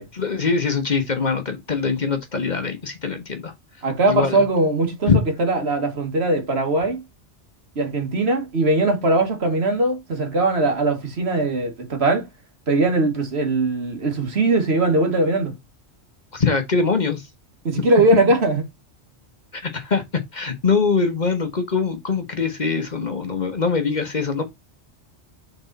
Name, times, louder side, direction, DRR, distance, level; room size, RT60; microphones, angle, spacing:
voice 1, 0.1-3.5 4.1-4.4 5.1-5.2 16.3-17.2 19.5-20.0 20.3-24.4, left 4 dB, 40° left, 1.1 m, -22 dB
voice 2, 3.8-7.0 7.8-12.3 12.7-15.6 17.7-18.6, right 2 dB, 65° right, 1.8 m, -20 dB
6.1 x 4.1 x 4.0 m
omnidirectional pair, 1.2 m